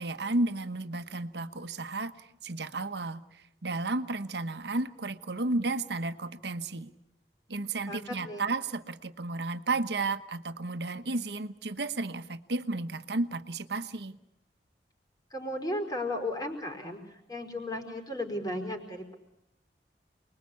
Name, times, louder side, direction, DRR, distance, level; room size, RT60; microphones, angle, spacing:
voice 1, 0.0-6.9 7.5-14.2, right 2 dB, 75° right, 10 dB, 1.2 m, -33 dB
voice 2, 7.9-8.4 15.3-19.1, left 1 dB, 20° left, 3 dB, 4.7 m, -35 dB
29.0 x 21.5 x 8.5 m, 0.86 s
head